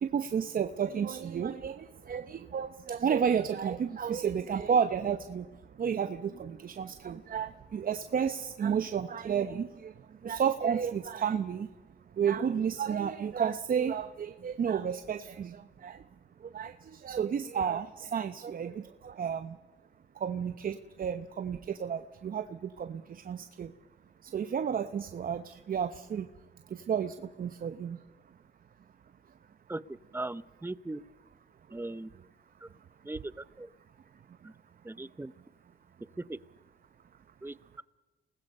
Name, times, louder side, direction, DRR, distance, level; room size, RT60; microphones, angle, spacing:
voice 1, 0.0-5.4 5.8-9.9 10.2-11.7 12.2-16.0 16.5-19.6 20.2-23.7 24.2-26.3 26.7-28.0, right 7 dB, 45° right, 10 dB, 0.9 m, -32 dB
voice 2, 30.1-31.0 31.7-32.1 33.1-33.2 34.9-35.3 37.4-37.8, right 2 dB, 10° right, 16 dB, 0.7 m, -38 dB
29.5 x 19.5 x 5.5 m, 1.2 s
cardioid pair, 90°, 20 cm